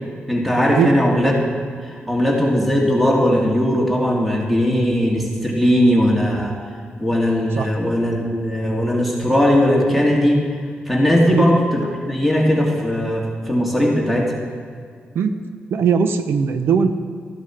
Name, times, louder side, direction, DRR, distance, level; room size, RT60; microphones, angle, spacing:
voice 1, 0.3-1.3 1.8-6.5 7.0-10.4 10.9-14.3, equal, ahead, -2 dB, 2.1 m, -18 dB
voice 2, 15.7-16.9, right 6 dB, 85° right, 9 dB, 0.8 m, -18 dB
13.5 x 11.0 x 4.4 m, 2.1 s
cardioid pair, 110°, 4 cm